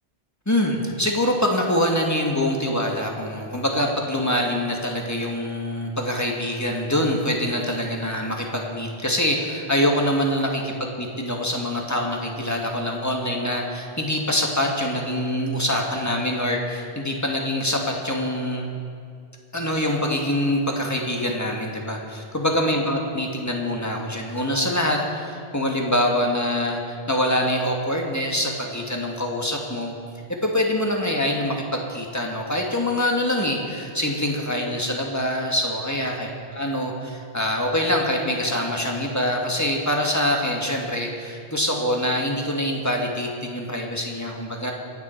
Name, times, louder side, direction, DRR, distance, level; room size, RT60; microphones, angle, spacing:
voice 1, 0.5-18.7 19.5-29.9 30.4-44.7, left 1 dB, 15° left, 0 dB, 1.8 m, -24 dB
25.0 x 9.5 x 4.5 m, 2.3 s
omnidirectional pair, 1.1 m